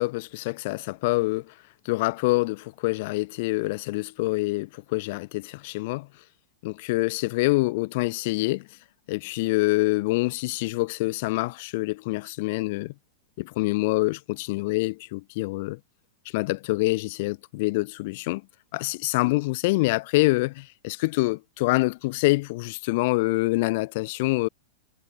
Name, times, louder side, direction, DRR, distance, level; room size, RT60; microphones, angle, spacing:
voice 1, 0.0-1.5 1.9-6.1 6.6-8.7 9.1-12.9 13.4-15.8 16.3-18.4 18.7-24.5, left 23 dB, 50° left, 1.9 m, -26 dB
supercardioid pair, 160°, 0 cm